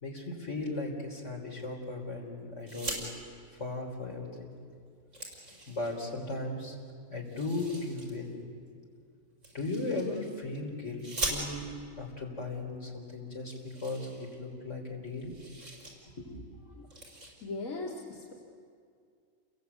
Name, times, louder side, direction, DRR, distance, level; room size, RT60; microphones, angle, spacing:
voice 1, 0.0-3.0 3.5-4.5 5.7-6.8 7.1-8.4 9.5-11.7 12.0-15.3 16.2-16.4, left 2 dB, 60° left, 0 dB, 4.4 m, -37 dB
sound 1, 2.6-3.0 4.4-4.5 4.8-6.2 7.3-8.1 9.4-10.3 11.0-11.9 12.7-12.8 13.1-13.2 13.5-14.8 15.0-15.9 16.3-16.5 16.9-17.3, right 2 dB, 65° right, 5.9 m, -40 dB
voice 2, 17.4-18.3, left 3 dB, 85° left, -3 dB, 2.5 m, -38 dB
29.5 x 22.5 x 8.4 m, 2.2 s
omnidirectional pair, 1.4 m